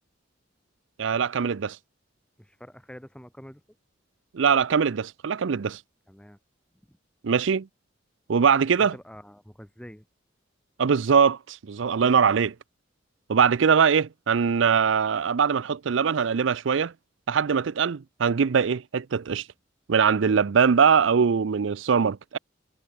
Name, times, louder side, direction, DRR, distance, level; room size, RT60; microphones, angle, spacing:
voice 1, 1.0-1.8 4.3-5.8 7.2-7.7 8.3-8.9 10.8-12.5 13.3-16.9 17.3-19.4 19.9-22.4, right 6 dB, 65° right, 0.5 m, -22 dB
voice 2, 2.4-3.6 6.1-6.4 6.9-7.0 8.8-10.1, equal, 5° left, 2.1 m, -46 dB
head